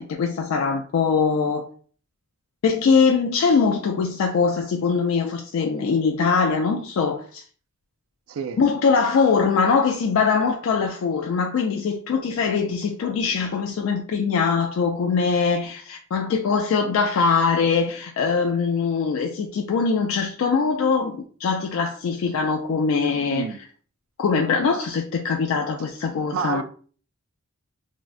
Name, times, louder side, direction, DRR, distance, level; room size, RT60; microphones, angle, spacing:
voice 1, 0.0-1.7 2.6-7.4 8.6-23.5 24.2-26.6, left 5 dB, 70° left, 0.3 m, -22 dB
voice 2, 26.3-26.6, right 6 dB, 70° right, 0.3 m, -28 dB
3.5 x 2.1 x 2.5 m
head